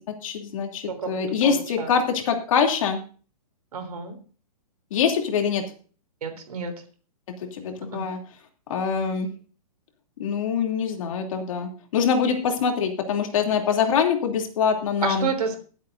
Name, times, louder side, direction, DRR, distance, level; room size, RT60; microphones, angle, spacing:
voice 1, 0.2-3.0 4.9-5.6 7.5-8.2 8.7-9.3 10.2-15.3, left 6 dB, 55° left, 3 dB, 2.9 m, -24 dB
voice 2, 0.9-1.9 3.7-4.2 6.2-6.7 7.9-8.0 15.0-15.6, right 5 dB, 75° right, 6 dB, 3.5 m, -30 dB
22.5 x 8.1 x 2.6 m, 0.39 s
hypercardioid pair, 150°, 20 cm